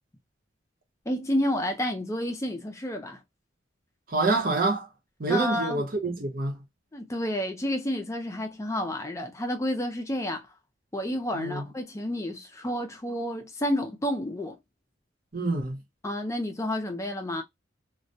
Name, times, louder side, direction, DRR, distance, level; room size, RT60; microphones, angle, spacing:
voice 1, 1.1-3.2 5.3-5.8 6.9-10.5 10.9-14.6 16.0-17.4, left 1 dB, 15° left, 0.4 m, -30 dB
voice 2, 4.1-4.9 5.2-6.6 11.3-11.6 15.3-15.8, right 3 dB, 45° right, 0.7 m, -27 dB
2.2 x 2.1 x 2.6 m
head